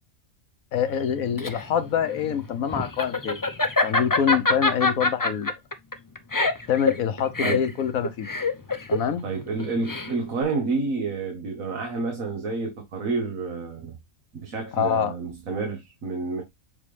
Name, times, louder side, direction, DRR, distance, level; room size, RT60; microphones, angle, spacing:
voice 1, 0.7-3.4 3.8-5.6 6.7-8.3 8.9-9.2 14.7-15.1, left 8 dB, 85° left, 1.3 m, -25 dB
Laughter, 1.0-10.4, left 3 dB, 20° left, 0.6 m, -25 dB
voice 2, 9.2-14.0 14.3-16.4, right 3 dB, 80° right, 1.9 m, -29 dB
7.4 x 3.9 x 3.3 m
omnidirectional pair, 1.4 m